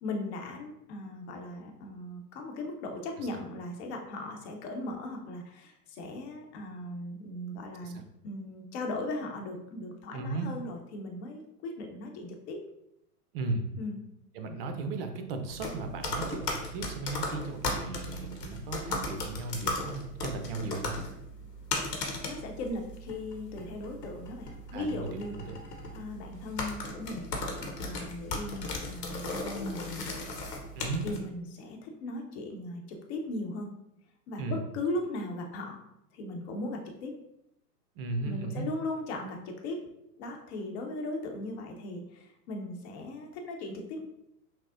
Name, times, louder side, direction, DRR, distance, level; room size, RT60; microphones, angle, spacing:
voice 1, 0.0-12.6 13.8-14.0 22.2-25.3 25.9-27.3 27.6-30.0 31.0-33.7 34.3-35.8 36.1-37.1 38.2-39.8 40.2-44.1, left 2 dB, 45° left, 2 dB, 0.8 m, -38 dB
voice 2, 10.1-10.5 13.3-13.6 14.3-21.0 24.7-25.6 30.8-31.0 34.4-34.6 38.0-38.7, right 3 dB, 40° right, 6 dB, 0.5 m, -36 dB
sound 1, 15.5-31.2, left 2 dB, 85° left, 1.0 m, -37 dB
5.9 x 2.0 x 2.6 m, 0.80 s
hypercardioid pair, 115°, 48 cm